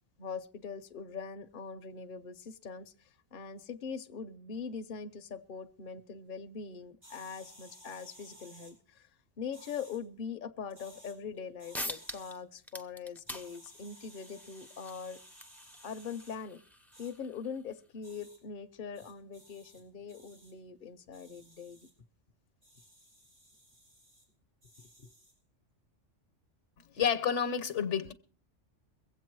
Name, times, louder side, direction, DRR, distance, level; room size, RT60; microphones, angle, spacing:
voice 1, 0.2-2.9 3.3-9.1 9.4-15.2 15.8-16.6 17.0-21.8 25.0-25.1, left 6 dB, 50° left, 0.8 m, -42 dB
sound 1, 7.0-8.7 9.5-10.0 10.7-11.1 11.6-12.3 13.3-16.4 16.9-17.1 18.0-18.4 18.9-19.8 20.1-20.5 21.1-21.9 22.6-24.2 24.6-25.4, equal, 90° right, 5.6 m, -57 dB
sound 2, 11.4-11.5 11.7-12.4 12.6-17.8, left 1 dB, ahead, 0.6 m, -45 dB
voice 2, 26.9-28.1, left 8 dB, 70° left, 1.2 m, -29 dB
23.0 x 8.1 x 4.6 m
omnidirectional pair, 1.3 m